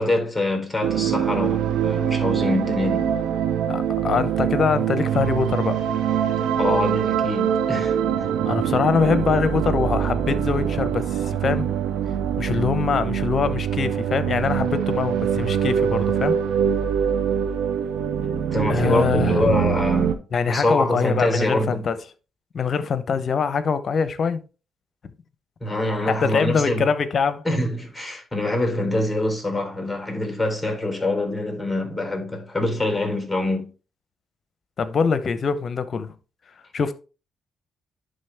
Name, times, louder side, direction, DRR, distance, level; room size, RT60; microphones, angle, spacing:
voice 1, 0.0-3.1 6.3-8.0 18.4-21.8 25.6-26.9 27.4-33.7, left 1 dB, 10° left, 3.6 m, -25 dB
sound 1, 0.8-20.1, right 9 dB, 75° right, 0.7 m, -23 dB
voice 2, 3.7-5.8 8.5-11.7 12.4-16.4 18.7-19.6 20.3-22.0 22.5-24.4 26.1-27.4 34.8-36.1 36.7-36.9, left 6 dB, 55° left, 0.8 m, -23 dB
11.0 x 3.8 x 3.4 m
supercardioid pair, 55°, 0 cm